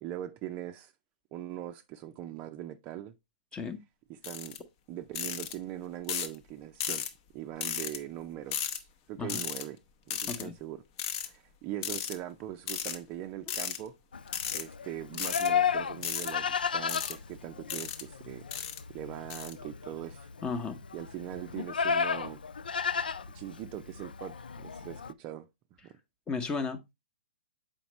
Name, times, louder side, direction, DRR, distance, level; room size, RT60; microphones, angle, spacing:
voice 1, 0.0-0.9 1.3-3.1 4.1-4.6 4.9-7.0 7.3-9.8 10.1-10.8 11.2-13.9 14.5-18.5 18.9-20.3 20.9-22.4 23.3-25.5 25.8-26.0, right 12 dB, 30° right, 0.5 m, -41 dB
sound 1, 4.2-4.6 5.1-5.5 6.1-6.3 6.8-7.1 7.6-8.0 8.5-8.8 9.3-9.6 10.1-10.4 11.0-11.3 11.8-12.1 12.7-13.0 13.5-13.8 14.3-14.6 15.1-15.5 16.0-16.3 16.9-17.1 17.7-18.0 18.5-18.8 19.3-19.5, left 9 dB, 40° left, 0.8 m, -34 dB
Livestock farm animals working animals, 14.1-25.1, left 6 dB, 80° left, 0.4 m, -33 dB
voice 2, 20.4-20.8 26.3-26.9, left 4 dB, 15° left, 0.9 m, -34 dB
7.0 x 5.1 x 3.1 m
hypercardioid pair, 125°, 5 cm